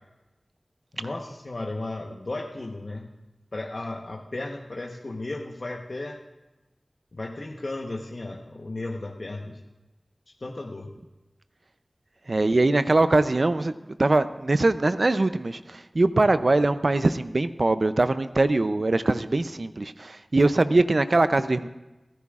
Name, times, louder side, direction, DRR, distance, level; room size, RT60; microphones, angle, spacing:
voice 1, 0.9-3.1 3.5-6.2 7.1-9.6 10.4-10.9, left 2 dB, 65° left, 0 dB, 1.0 m, -34 dB
voice 2, 12.3-13.7 14.0-21.7, right 2 dB, 60° right, 12 dB, 0.5 m, -22 dB
24.5 x 13.5 x 2.4 m, 1.1 s
wide cardioid pair, 45°, 0 cm